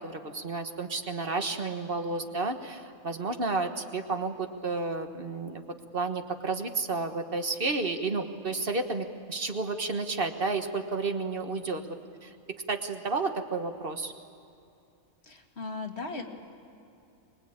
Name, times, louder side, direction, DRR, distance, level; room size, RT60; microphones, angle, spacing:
voice 1, 0.0-5.6 5.9-11.8 12.2-12.3 12.7-14.1, right 3 dB, 45° right, 6 dB, 1.5 m, -31 dB
voice 2, 15.2-16.2, left 3 dB, 50° left, 3 dB, 2.2 m, -37 dB
24.5 x 21.5 x 8.7 m, 2.7 s
omnidirectional pair, 1.4 m